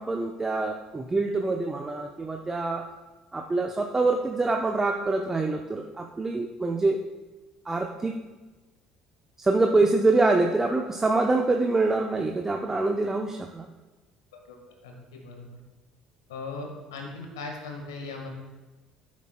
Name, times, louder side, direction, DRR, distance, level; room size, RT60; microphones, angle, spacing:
voice 1, 0.0-2.9 3.3-7.0 7.7-8.2 9.4-13.7, right 3 dB, 20° right, 2 dB, 0.7 m, -25 dB
voice 2, 14.8-15.5 16.3-18.3, left 3 dB, 80° left, 2 dB, 1.5 m, -38 dB
13.5 x 7.3 x 2.2 m, 1.2 s
hypercardioid pair, 60°, 2 cm